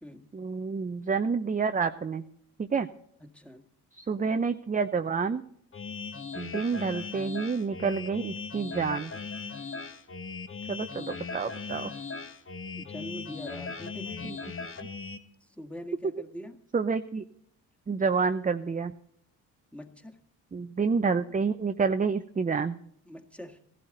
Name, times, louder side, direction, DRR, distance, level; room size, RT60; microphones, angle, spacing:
voice 1, 0.3-2.2 2.6-2.9 3.9-5.4 6.4-9.1 10.7-11.9 14.2-14.4 16.7-17.2 17.9-18.9 20.5-22.8, right 5 dB, 20° right, 8 dB, 0.7 m, -28 dB
voice 2, 3.2-3.7 12.7-14.2 15.4-16.6 19.7-20.2 23.1-23.6, equal, 5° left, 4 dB, 1.8 m, -43 dB
sound 1, 5.7-15.2, left 4 dB, 30° left, 1.2 m, -38 dB
15.0 x 12.0 x 3.9 m, 0.70 s
hypercardioid pair, 55°, 41 cm